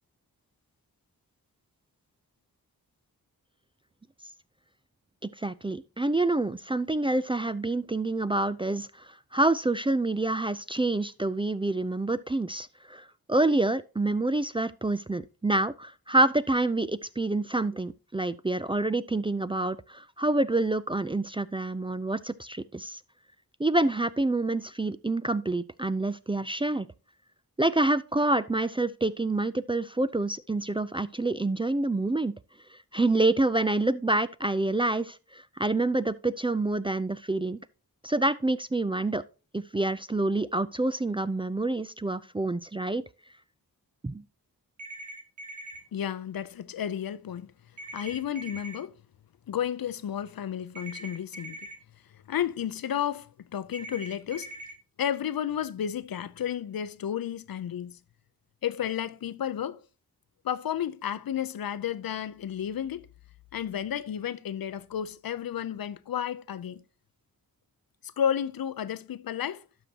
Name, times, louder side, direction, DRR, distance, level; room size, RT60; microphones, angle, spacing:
voice 1, 5.2-9.1 9.3-23.0 23.6-26.9 27.6-32.3 32.7-37.6 38.0-39.2 39.5-43.0 44.0-44.2, right 2 dB, 15° right, 0.4 m, -27 dB
sound 1, 44.8-45.8 47.8-48.8 50.8-51.7 53.7-54.7, right 1 dB, 50° right, 2.9 m, -42 dB
voice 2, 45.9-47.5 47.9-48.9 49.5-51.6 52.1-54.5 55.0-58.0 58.6-59.8 60.4-63.1 63.5-66.8 68.2-69.6, left 9 dB, 70° left, 0.6 m, -32 dB
12.0 x 6.3 x 2.8 m
cardioid pair, 65°, 37 cm